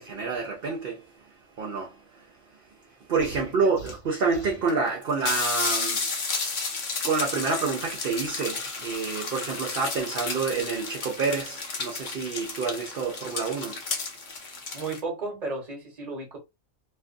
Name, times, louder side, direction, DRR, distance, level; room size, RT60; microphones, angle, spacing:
voice 1, 0.0-6.2 7.0-13.9 14.4-14.7, right 4 dB, 55° right, 0.7 m, -29 dB
sound 1, 3.2-4.7, right 1 dB, 70° left, 1.1 m, -43 dB
sound 2, 3.9-4.0 4.7-4.8 5.0-15.0, left 4 dB, 50° left, 0.6 m, -32 dB
voice 2, 14.7-16.4, right 3 dB, 30° right, 1.0 m, -33 dB
2.6 x 2.4 x 2.5 m
omnidirectional pair, 1.4 m